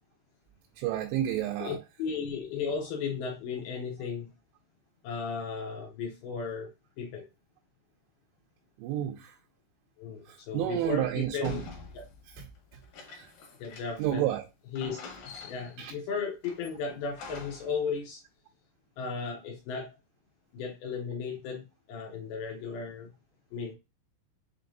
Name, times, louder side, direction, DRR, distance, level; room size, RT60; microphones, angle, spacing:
voice 1, 0.8-1.8 8.8-9.3 10.3-11.6 12.4-12.5 13.1-13.3 14.0-14.4 15.8-15.9, right 12 dB, 85° right, 2.9 m, -30 dB
voice 2, 1.6-4.3 5.0-6.7 7.0-7.3 10.0-11.6 11.9-12.1 13.6-14.3 14.7-15.1 15.4-18.2 19.0-20.0 20.5-23.1 23.5-23.7, left 5 dB, 90° left, 2.2 m, -35 dB
sound 1, 11.4-14.2 14.4-14.5 14.8-15.9 16.4-17.8, left 4 dB, 65° left, 2.6 m, -46 dB
6.7 x 3.1 x 2.5 m
omnidirectional pair, 5.3 m